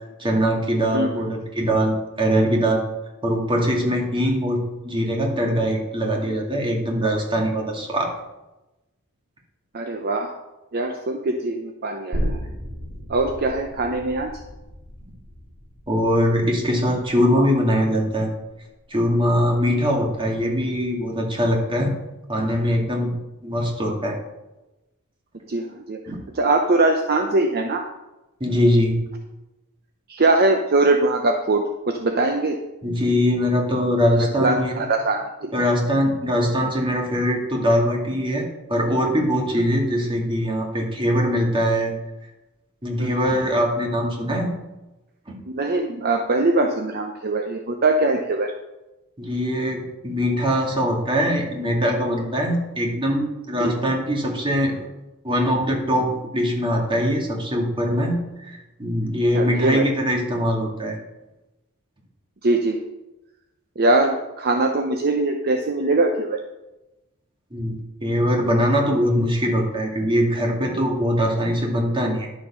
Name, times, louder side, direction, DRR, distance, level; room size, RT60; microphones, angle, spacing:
voice 1, 0.2-2.8 3.2-8.1 15.9-18.3 18.9-21.9 22.3-23.1 23.4-24.2 26.1-26.2 28.4-28.9 32.8-34.9 35.5-41.9 42.8-44.5 45.3-45.4 49.2-54.9 55.2-61.0 67.5-72.3, equal, 25° right, 0 dB, 2.2 m, -22 dB
voice 2, 9.7-10.3 10.7-12.4 13.1-14.3 25.5-26.0 26.3-27.9 30.1-32.6 34.2-35.6 43.0-43.1 45.5-48.5 53.6-53.9 59.3-59.8 62.4-62.8 63.8-66.4, right 2 dB, 45° right, 4 dB, 0.8 m, -22 dB
sound 1, 12.1-19.4 19.8-19.9, equal, 85° right, 3.3 m, -34 dB
11.0 x 6.8 x 5.7 m, 1.0 s
head